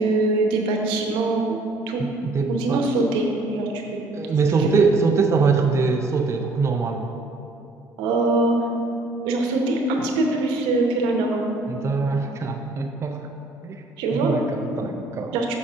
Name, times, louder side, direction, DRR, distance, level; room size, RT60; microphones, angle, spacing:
voice 1, 0.0-1.6 1.9-2.0 2.5-4.0 4.6-4.7 8.0-8.5 9.2-11.6 14.0-14.4 14.8-14.9 15.3-15.6, right 2 dB, 80° right, 1 dB, 1.0 m, -23 dB
voice 2, 2.0-2.9 4.1-7.1 11.7-13.3 13.6-13.8 14.1-15.3, right 4 dB, 35° right, 3 dB, 0.5 m, -23 dB
6.4 x 4.2 x 6.1 m, 2.7 s
supercardioid pair, 85°, 8 cm